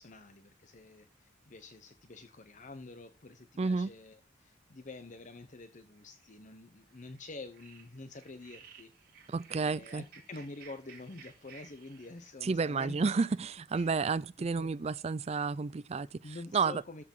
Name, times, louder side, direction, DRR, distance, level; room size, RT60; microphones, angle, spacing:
voice 1, 0.0-8.9 9.6-13.0 13.7-13.9 14.4-14.7 16.2-17.0, left 2 dB, 40° left, 0.9 m, -48 dB
voice 2, 3.6-3.9 9.3-10.0 12.4-16.8, right 4 dB, 35° right, 0.4 m, -31 dB
sound 1, 6.0-6.3 6.9-7.2 7.5-12.3, right 6 dB, 50° right, 3.0 m, -56 dB
13.5 x 4.8 x 5.4 m
head